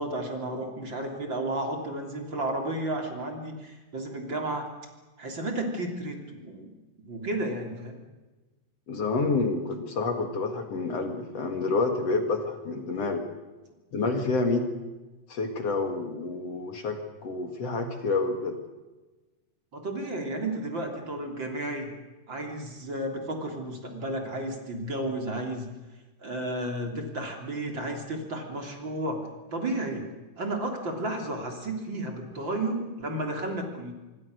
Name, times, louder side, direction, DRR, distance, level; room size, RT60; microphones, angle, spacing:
voice 1, 0.0-4.7 5.2-6.7 7.1-8.0 19.7-21.9 22.3-25.7 26.2-29.2 29.5-30.1 30.4-33.9, right 1 dB, 35° right, 3 dB, 3.7 m, -32 dB
voice 2, 8.9-13.2 13.9-14.7 15.3-18.6, left 3 dB, 55° left, 5 dB, 2.8 m, -28 dB
26.5 x 23.5 x 6.5 m, 1.2 s
omnidirectional pair, 3.6 m